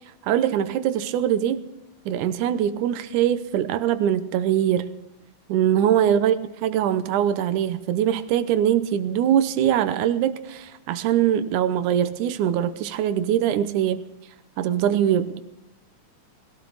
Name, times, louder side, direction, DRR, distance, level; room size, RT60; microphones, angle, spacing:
voice 1, 0.2-1.6 2.1-5.0 5.5-14.0 14.6-15.4, right 10 dB, 85° right, 12 dB, 2.4 m, -22 dB
21.0 x 17.0 x 4.0 m, 0.87 s
omnidirectional pair, 3.4 m